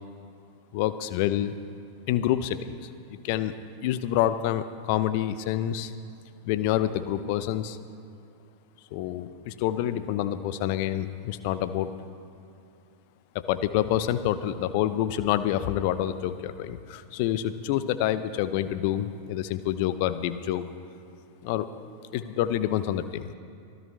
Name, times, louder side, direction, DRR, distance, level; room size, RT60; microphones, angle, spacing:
voice 1, 0.7-1.5 2.1-3.5 3.8-5.9 6.5-7.8 8.9-11.9 13.3-20.6 21.4-21.7 22.1-23.3, left 12 dB, 45° left, 13 dB, 0.7 m, -27 dB
24.0 x 15.5 x 3.3 m, 2.5 s
figure-of-eight pair, 90°, 0 cm